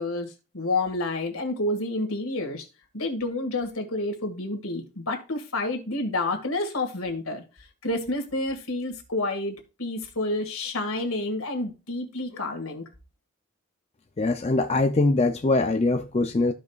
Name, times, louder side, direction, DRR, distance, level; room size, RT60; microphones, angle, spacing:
voice 1, 0.0-2.7 2.9-12.8, left 2 dB, 75° left, 2.0 m, -29 dB
voice 2, 14.2-16.5, left 2 dB, 30° left, 0.4 m, -22 dB
14.5 x 5.3 x 2.4 m
head